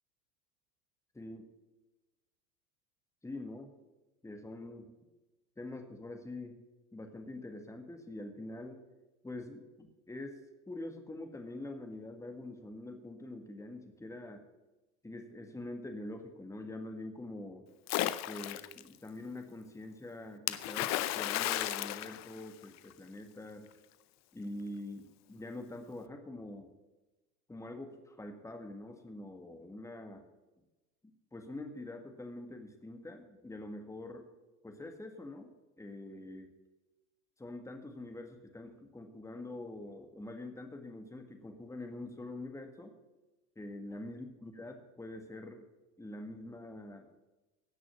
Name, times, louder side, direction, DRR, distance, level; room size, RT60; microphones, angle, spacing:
voice 1, 1.1-1.5 3.2-3.7 4.2-4.9 5.6-6.6 6.9-8.8 9.2-14.4 15.0-17.7 18.3-23.7 24.3-26.7 27.5-30.2 31.3-34.3 34.6-35.5 35.8-36.5 37.4-42.9 43.5-45.7 46.0-47.1, left 2 dB, 5° left, 5 dB, 1.7 m, -45 dB
Splash splatter, 17.9-18.8 20.5-22.9, left 14 dB, 35° left, 0.7 m, -34 dB
16.5 x 6.2 x 6.9 m, 1.1 s
hypercardioid pair, 85°, 45 cm